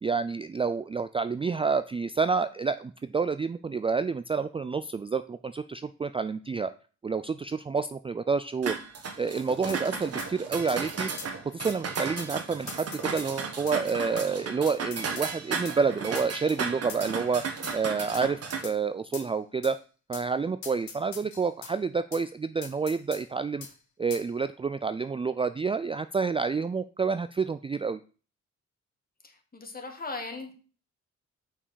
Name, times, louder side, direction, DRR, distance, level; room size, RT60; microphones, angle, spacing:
voice 1, 0.0-6.7 7.0-8.8 9.2-11.1 11.5-17.4 17.7-19.8 20.1-23.7 24.0-28.0, right 5 dB, 20° right, 12 dB, 0.4 m, -29 dB
sound 1, 8.6-18.6, right 5 dB, 55° right, 1.5 m, -35 dB
sound 2, 9.7-9.8 10.2-10.3 10.7-10.8 11.2-11.3 11.7-11.8 12.2-12.3 12.7-13.8 14.2-14.3 14.7-15.3 15.6-15.8 16.1-16.3 16.9-17.2 17.6-17.8 18.1-18.3 18.6-18.8 19.1-19.3 19.6-19.7 20.1-20.3 20.6-21.7 22.1-22.2 22.6-23.2 23.6-23.7 24.1-24.3, left 6 dB, 75° left, 1.5 m, -43 dB
voice 2, 29.2-30.5, left 3 dB, 30° left, 4 dB, 2.1 m, -38 dB
5.8 x 4.9 x 6.3 m, 0.37 s
cardioid pair, 80°, 29 cm